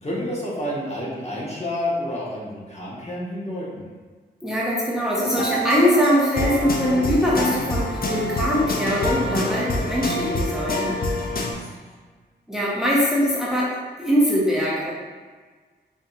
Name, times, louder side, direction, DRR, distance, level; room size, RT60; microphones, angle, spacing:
voice 1, 0.0-3.8 11.3-11.7, left 1 dB, 35° left, -6 dB, 1.3 m, -29 dB
voice 2, 4.4-10.9 12.5-13.7 14.0-14.9, equal, 5° right, -6 dB, 0.9 m, -22 dB
sound 1, 5.2-11.5, left 1 dB, 55° left, 0.6 m, -26 dB
5.1 x 2.7 x 2.4 m, 1.4 s
cardioid pair, 50°, 19 cm